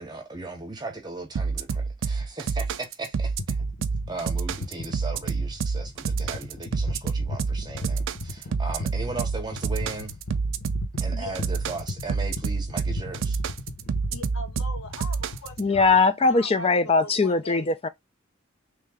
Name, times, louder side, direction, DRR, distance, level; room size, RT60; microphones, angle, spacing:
voice 1, 0.0-3.7 4.1-10.2 11.0-13.4, right 3 dB, 20° right, 0.9 m, -37 dB
sound 1, 1.4-15.6, right 5 dB, 60° right, 0.4 m, -28 dB
sound 2, 3.4-16.0, left 2 dB, 65° left, 1.0 m, -38 dB
voice 2, 14.1-16.0 16.2-17.7, left 2 dB, 90° left, 1.2 m, -40 dB
voice 3, 15.6-17.9, left 4 dB, 30° left, 0.4 m, -21 dB
3.2 x 2.9 x 3.6 m
head